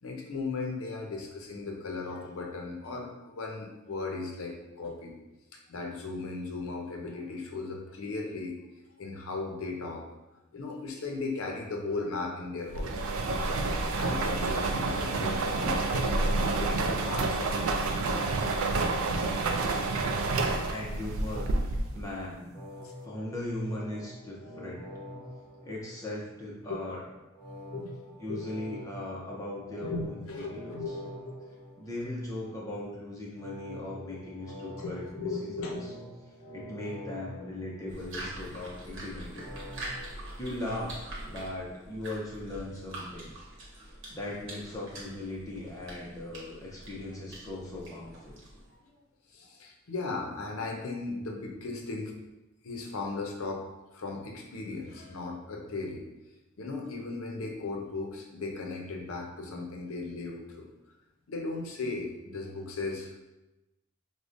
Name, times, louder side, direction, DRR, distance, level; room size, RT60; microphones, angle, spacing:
voice 1, 0.0-5.1 5.7-8.6 9.0-10.0 10.5-12.9 13.9-18.1 22.8-23.1 25.6-25.7 26.7-26.8 27.6-28.5 29.8-31.4 34.8-35.8 48.9-49.0 49.3-52.1 52.6-56.0 56.6-60.7 61.3-63.2, left 3 dB, 80° left, 1 dB, 0.5 m, -37 dB
sound 1, 12.7-22.1, right 3 dB, 80° right, 0.4 m, -29 dB
voice 2, 20.6-22.6 23.0-24.9 25.6-27.0 28.2-30.8 31.8-35.9 36.5-39.5 40.1-43.3 44.1-48.4, left 1 dB, 15° left, -4 dB, 0.5 m, -39 dB
sound 2, 22.5-26.4 27.3-32.4 33.3-38.4 39.3-40.1, equal, 40° left, 0.8 m, -46 dB
sound 3, 37.9-48.7, right 1 dB, 60° right, 0.9 m, -44 dB
4.9 x 2.1 x 2.5 m, 1.0 s
head